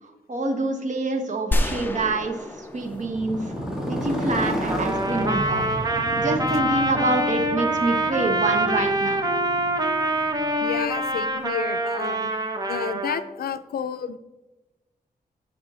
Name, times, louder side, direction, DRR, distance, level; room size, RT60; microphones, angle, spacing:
voice 1, 0.0-3.5 3.9-5.6 6.2-9.3, right 2 dB, 50° right, 4 dB, 1.2 m, -26 dB
sound 1, 1.5-4.4, left 1 dB, 15° left, 0.6 m, -29 dB
Motorcycle, 2.7-10.8, equal, 5° right, 1.6 m, -32 dB
Trumpet, 4.7-13.2, right 1 dB, 25° right, 0.8 m, -25 dB
voice 2, 10.6-12.3 12.7-14.2, left 8 dB, 75° left, 13 dB, 0.4 m, -31 dB
10.0 x 5.5 x 4.0 m, 1.1 s
wide cardioid pair, 150°, 16 cm